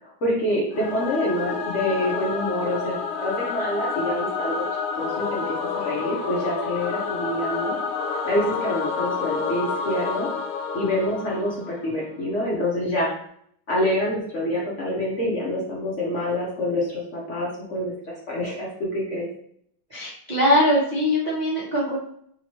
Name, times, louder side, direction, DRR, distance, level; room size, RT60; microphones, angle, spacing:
voice 1, 0.0-4.6 5.0-7.8 8.2-10.3 10.7-13.2 13.7-19.3, left 1 dB, 55° left, -4 dB, 0.8 m, -26 dB
Singing / Musical instrument, 0.7-12.0, left 5 dB, 80° left, 1.4 m, -29 dB
voice 2, 19.9-22.0, left 1 dB, 85° right, -6 dB, 0.4 m, -21 dB
3.4 x 3.0 x 4.1 m, 0.67 s
omnidirectional pair, 2.3 m